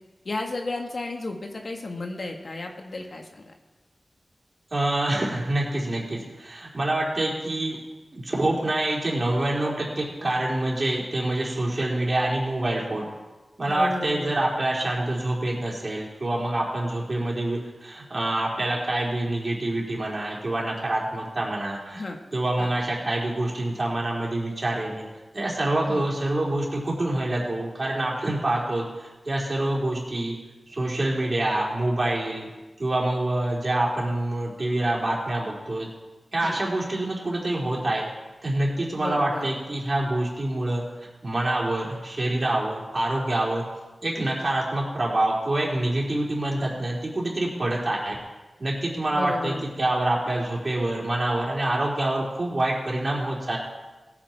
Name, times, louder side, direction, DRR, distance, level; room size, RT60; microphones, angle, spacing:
voice 1, 0.2-3.5 13.7-14.4 21.9-22.2 22.6-22.7 25.9-26.1 36.4-36.6 39.0-39.5 49.1-49.6, left 2 dB, 65° left, 3 dB, 1.6 m, -33 dB
voice 2, 4.7-7.8 8.1-13.0 13.6-22.0 22.3-25.1 25.3-30.3 30.7-32.5 32.8-35.9 36.3-38.1 38.4-40.8 41.2-43.6 44.0-48.2 48.6-53.6, right 1 dB, 50° right, -3 dB, 3.9 m, -26 dB
17.0 x 8.9 x 4.5 m, 1.2 s
cardioid pair, 45°, 0 cm